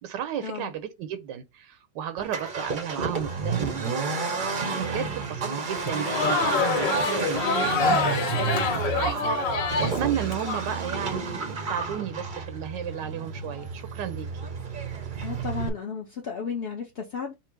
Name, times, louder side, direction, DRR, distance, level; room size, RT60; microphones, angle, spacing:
voice 1, 0.0-14.5, right 9 dB, 85° right, 1.3 m, -34 dB
Accelerating revving vroom, 2.2-15.7, right 4 dB, 50° right, 0.6 m, -31 dB
Crowd, 5.8-10.6, left 3 dB, 80° left, 1.7 m, -26 dB
voice 2, 15.2-17.3, left 6 dB, 55° left, 0.6 m, -33 dB
4.3 x 2.0 x 4.5 m
omnidirectional pair, 1.9 m